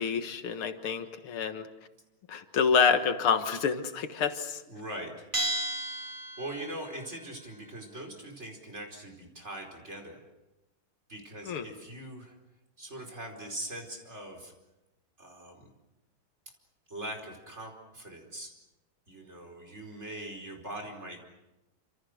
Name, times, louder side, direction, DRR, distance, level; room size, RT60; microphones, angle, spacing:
voice 1, 0.0-1.7 2.3-4.6 11.5-11.7, left 6 dB, 85° left, 8 dB, 2.4 m, -27 dB
voice 2, 4.7-5.3 5.9-6.1 6.4-10.2 11.1-12.3 12.8-14.5 15.2-15.7 16.9-18.5 19.1-21.2, right 1 dB, 30° right, 2 dB, 4.9 m, -41 dB
Bell, 5.3-6.9, right 2 dB, 10° right, 3.1 m, -33 dB
29.0 x 26.5 x 6.5 m, 0.98 s
omnidirectional pair, 2.3 m